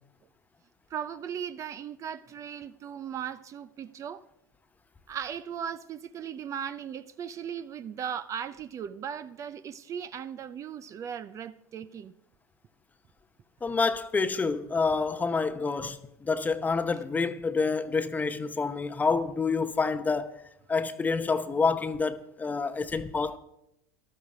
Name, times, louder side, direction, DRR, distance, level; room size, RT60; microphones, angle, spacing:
voice 1, 0.9-4.2 5.1-12.1, right 8 dB, 30° right, 0.6 m, -37 dB
voice 2, 13.6-20.4 20.7-23.4, left 4 dB, 15° left, 0.8 m, -28 dB
13.5 x 12.5 x 4.9 m
hypercardioid pair, 105°, 10 cm